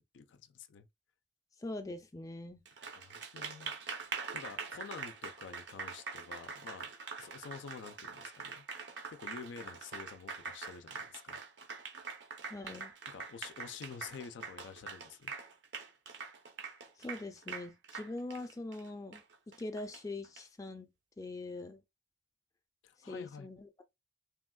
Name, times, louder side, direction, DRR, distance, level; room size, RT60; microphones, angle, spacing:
voice 1, 0.1-0.9 3.0-3.7 4.3-6.9 7.2-8.7 9.1-11.4 13.1-15.3 22.8-23.6, left 6 dB, 85° left, 0.4 m, -49 dB
voice 2, 1.6-2.6 12.5-12.9 17.0-19.2 19.6-20.9 21.2-21.8 23.0-23.8, left 2 dB, 20° left, 0.4 m, -42 dB
Applause, 2.7-20.4, right 5 dB, 70° right, 0.7 m, -44 dB
3.3 x 2.2 x 2.3 m
head